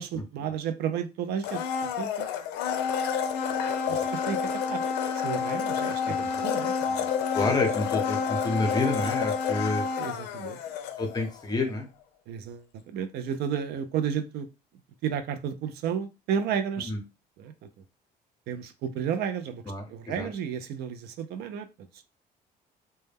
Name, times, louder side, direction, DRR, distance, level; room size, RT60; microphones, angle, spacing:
voice 1, 0.0-1.6 2.0-2.3 3.9-4.9 5.2-7.1 10.0-10.7 12.3-14.5 15.0-16.9 17.4-17.5 18.5-19.6 19.9-22.0, right 8 dB, 70° right, 0.4 m, -32 dB
Domestic sounds home sounds, 1.4-11.4 11.7-11.8, left 6 dB, 90° left, 0.4 m, -29 dB
voice 2, 6.0-6.4 7.3-9.9 11.0-11.9 16.9-17.0 19.7-19.8 20.1-20.3, left 2 dB, 25° left, 0.7 m, -29 dB
2.1 x 2.1 x 3.3 m
cardioid pair, 110°, 17 cm